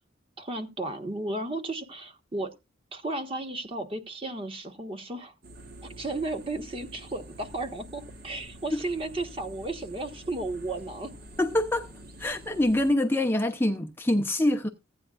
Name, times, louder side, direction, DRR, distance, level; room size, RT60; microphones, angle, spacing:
voice 1, 0.4-2.5 2.9-5.3 5.8-11.1, right 2 dB, 30° right, 1.2 m, -34 dB
sound 1, 5.4-12.9, right 1 dB, 55° right, 1.8 m, -47 dB
voice 2, 11.4-11.9 12.2-14.7, left 1 dB, 10° left, 0.7 m, -25 dB
16.0 x 8.9 x 2.4 m
head